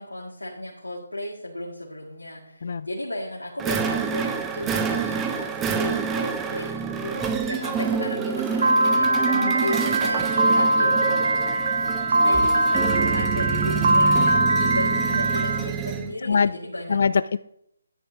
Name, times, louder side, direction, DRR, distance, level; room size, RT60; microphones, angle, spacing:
voice 1, 0.0-11.3 12.1-17.0, left 1 dB, 90° left, -3 dB, 2.1 m, -34 dB
sound 1, 3.6-16.1, right 6 dB, 10° right, 0.6 m, -27 dB
Piano, 8.6-15.6, right 2 dB, 50° right, 1.0 m, -21 dB
voice 2, 16.2-16.5 16.9-17.4, left 5 dB, 55° left, 15 dB, 0.3 m, -23 dB
11.0 x 9.9 x 2.8 m, 0.76 s
figure-of-eight pair, 150°, 0 cm